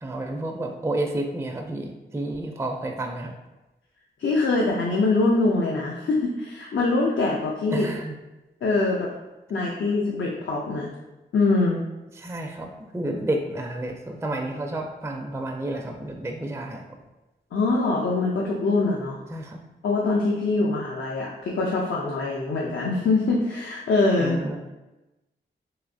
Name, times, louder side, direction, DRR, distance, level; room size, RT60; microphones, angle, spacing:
voice 1, 0.0-3.3 7.7-8.1 12.1-16.8 19.3-19.6 24.2-24.6, right 1 dB, 15° right, 2 dB, 0.4 m, -30 dB
voice 2, 4.2-7.9 8.6-9.1 9.5-10.9 11.3-11.8 17.5-19.2 19.8-24.4, left 3 dB, 70° left, -3 dB, 0.5 m, -23 dB
3.1 x 2.7 x 2.6 m, 1.0 s
cardioid pair, 50°, 20 cm